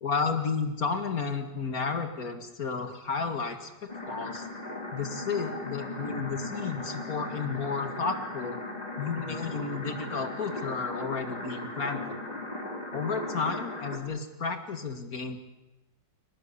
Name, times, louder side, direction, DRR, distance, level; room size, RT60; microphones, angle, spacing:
voice 1, 0.0-4.5 4.9-8.6 9.0-12.2 12.9-15.4, left 5 dB, 55° left, 7 dB, 2.5 m, -32 dB
sound 1, 3.9-14.0, left 2 dB, 20° left, 3.9 m, -37 dB
24.5 x 19.0 x 8.8 m, 0.99 s
omnidirectional pair, 1.9 m